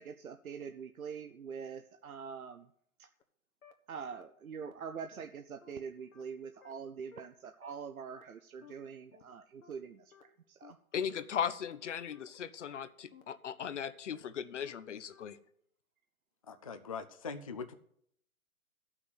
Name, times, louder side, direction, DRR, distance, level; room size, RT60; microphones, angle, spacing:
voice 1, 0.0-2.7 3.0-3.1 3.9-10.8, right 6 dB, 80° right, 8 dB, 0.8 m, -44 dB
sound 1, 3.2-3.3 3.6-3.7 4.1-4.2 4.6-4.7 5.1-5.2 5.6-5.7 6.1-6.2 6.6-6.7 7.1-7.2 7.6-7.7 8.1-8.2 8.6-8.7 9.1-9.2 9.6-9.7 10.1-10.2 10.6-10.7 11.1-11.2 11.6-11.7 12.1-12.2 12.6-12.7 13.1-13.2 13.6-13.7 14.1-14.2 14.6-14.7 15.1-15.2, left 7 dB, 75° left, 1.5 m, -56 dB
voice 2, 10.9-15.4, left 8 dB, 55° left, 14 dB, 0.9 m, -37 dB
voice 3, 16.5-17.7, left 5 dB, 25° left, 8 dB, 0.4 m, -42 dB
12.5 x 6.0 x 7.9 m, 0.70 s
hypercardioid pair, 145°, 42 cm